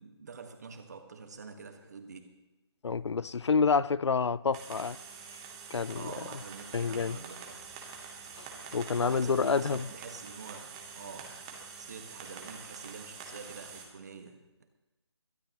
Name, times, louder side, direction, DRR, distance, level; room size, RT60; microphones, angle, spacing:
voice 1, 0.0-2.4 5.9-7.7 9.0-14.4, right 5 dB, 35° right, 1.5 m, -46 dB
voice 2, 2.8-5.0 5.7-6.0 6.7-7.2 8.4-9.8, left 5 dB, 75° left, 0.4 m, -28 dB
sound 1, 4.5-13.9, right 5 dB, 10° right, 1.1 m, -46 dB
22.5 x 12.0 x 3.0 m
figure-of-eight pair, 170°, 14 cm